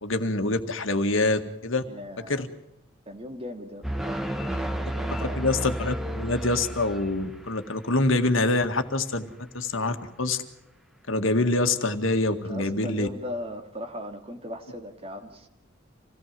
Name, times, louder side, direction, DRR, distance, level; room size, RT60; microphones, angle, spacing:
voice 1, 0.0-1.8 2.3-2.5 5.2-9.3 9.5-10.4 11.1-13.1, left 2 dB, 80° left, 7 dB, 1.9 m, -25 dB
voice 2, 1.8-2.4 3.1-5.5 12.4-15.5, left 1 dB, 30° right, 4 dB, 2.6 m, -38 dB
sound 1, 3.8-7.6, right 1 dB, ahead, 1.3 m, -32 dB
27.0 x 18.0 x 7.6 m, 0.82 s
head